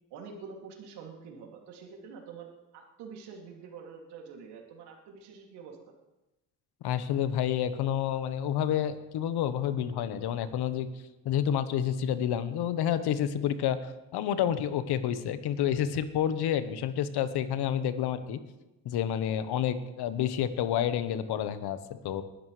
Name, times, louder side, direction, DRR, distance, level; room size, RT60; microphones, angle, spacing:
voice 1, 0.1-5.8, right 5 dB, 75° right, 1 dB, 2.8 m, -46 dB
voice 2, 6.8-10.9 11.2-18.4 18.8-22.2, left 9 dB, 70° left, 12 dB, 1.2 m, -29 dB
21.0 x 11.5 x 3.3 m, 1.0 s
supercardioid pair, 65°, 41 cm